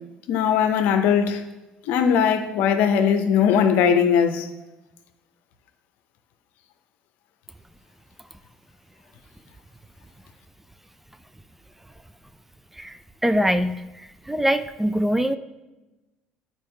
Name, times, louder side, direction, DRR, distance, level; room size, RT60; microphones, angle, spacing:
voice 1, 0.3-1.4 1.9-4.5, left 7 dB, 70° left, 8 dB, 0.7 m, -19 dB
voice 2, 13.2-13.8 14.3-15.4, equal, 5° right, 10 dB, 0.4 m, -22 dB
9.1 x 4.6 x 3.3 m, 1.1 s
hypercardioid pair, 70°, 3 cm